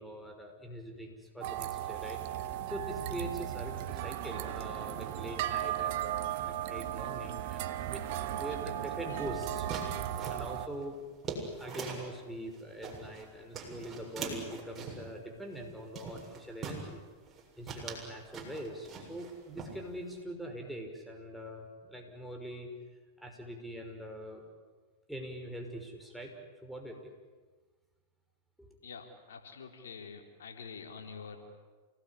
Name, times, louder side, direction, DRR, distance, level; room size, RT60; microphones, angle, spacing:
voice 1, 0.0-2.2 2.7-11.0 11.6-17.0 17.6-22.7 23.2-24.4 25.1-27.1 28.6-28.8, equal, ahead, 3 dB, 5.7 m, -43 dB
sound 1, 1.4-10.7, right 12 dB, 60° right, 1.7 m, -36 dB
sound 2, 9.2-12.1 12.5-13.3 13.5-15.1 15.5-15.7 16.0-16.9 17.3-17.4 17.7-19.3 19.6-20.2, right 4 dB, 25° right, 7.3 m, -42 dB
voice 2, 28.8-31.4, left 5 dB, 80° left, 4 dB, 3.7 m, -46 dB
29.0 x 19.0 x 10.0 m, 1.4 s
hypercardioid pair, 105°, 0 cm